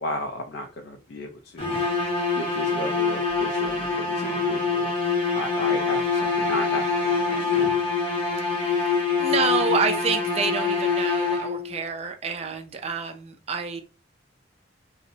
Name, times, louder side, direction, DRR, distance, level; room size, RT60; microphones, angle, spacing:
voice 1, 0.0-1.7 2.3-4.9 5.4-7.8, left 1 dB, 60° left, 3 dB, 0.4 m, -34 dB
sound 1, 1.6-11.8, left 4 dB, 30° left, 0.7 m, -25 dB
voice 2, 8.4-13.8, right 5 dB, 35° right, 5 dB, 0.4 m, -28 dB
2.7 x 2.0 x 2.5 m, 0.32 s
head